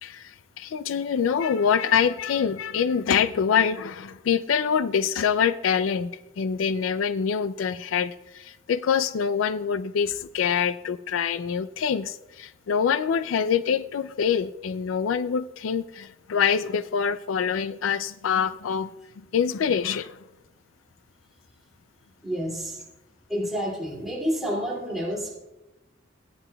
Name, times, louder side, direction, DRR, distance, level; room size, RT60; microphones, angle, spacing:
voice 1, 0.0-18.9 19.3-20.2, left 7 dB, 85° left, 13 dB, 0.4 m, -25 dB
voice 2, 22.2-22.8 23.3-25.4, equal, ahead, -5 dB, 2.4 m, -29 dB
21.0 x 8.0 x 2.3 m, 0.95 s
head